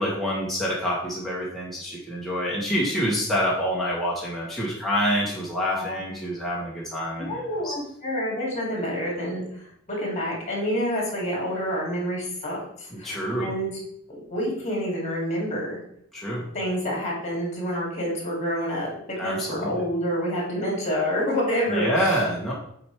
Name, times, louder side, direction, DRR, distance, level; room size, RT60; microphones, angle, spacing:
voice 1, 0.0-7.7 12.9-13.5 16.1-16.5 19.2-19.7 21.7-22.5, equal, ahead, -6 dB, 1.2 m, -27 dB
voice 2, 5.7-6.1 7.2-13.1 13.4-13.7 14.1-15.8 16.5-22.2, equal, 35° left, -3 dB, 2.6 m, -28 dB
7.6 x 4.4 x 3.4 m, 0.71 s
head